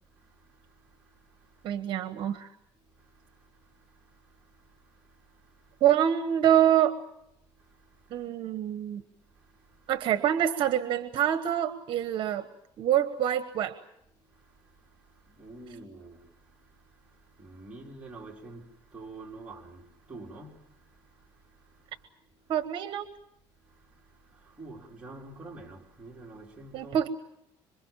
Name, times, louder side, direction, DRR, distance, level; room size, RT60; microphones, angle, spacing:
voice 1, 0.1-1.8 3.0-5.8 7.5-8.3 9.3-9.9 14.3-22.0 23.6-27.0, right 2 dB, 10° right, 4.0 m, -50 dB
voice 2, 1.6-2.5 5.8-7.0 8.1-9.0 9.9-12.5 12.8-13.7 22.5-23.0 26.7-27.1, right 10 dB, 50° right, 1.2 m, -26 dB
26.5 x 24.0 x 7.4 m
cardioid pair, 145°, 10 cm